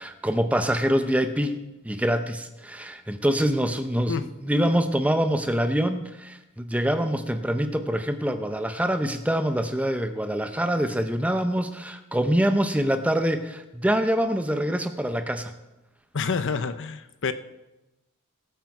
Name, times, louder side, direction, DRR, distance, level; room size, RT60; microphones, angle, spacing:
voice 1, 0.0-1.6 1.8-15.5, equal, 5° right, 8 dB, 0.6 m, -25 dB
voice 2, 16.1-17.3, left 5 dB, 60° left, 12 dB, 0.7 m, -28 dB
18.5 x 8.1 x 4.8 m, 1.0 s
head